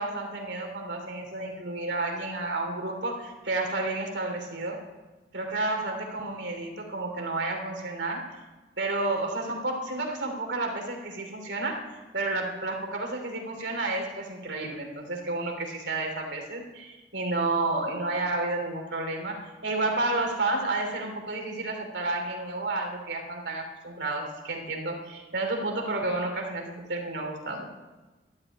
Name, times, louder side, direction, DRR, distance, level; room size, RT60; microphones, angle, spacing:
voice 1, 0.0-4.8 5.3-8.3 8.8-11.9 12.1-27.6, right 2 dB, 70° right, 2 dB, 3.0 m, -31 dB
12.5 x 9.0 x 9.3 m, 1.2 s
head